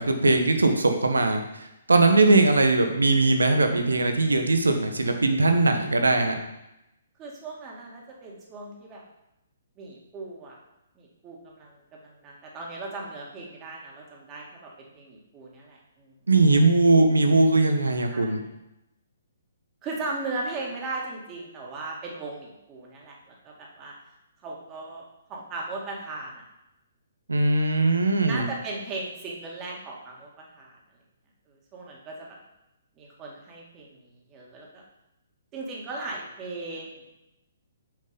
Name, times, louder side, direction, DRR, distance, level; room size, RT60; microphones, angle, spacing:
voice 1, 0.0-6.3 16.3-18.4 27.3-28.5, right 2 dB, 80° right, 5 dB, 1.2 m, -20 dB
voice 2, 7.2-9.0 9.8-10.6 11.0-16.1 18.1-18.4 19.8-23.9 24.4-26.4 28.3-30.8 31.5-32.4 33.0-34.8 35.5-37.1, right 3 dB, 25° right, -2 dB, 2.2 m, -37 dB
7.1 x 5.6 x 5.3 m, 0.90 s
figure-of-eight pair, 130°, 0 cm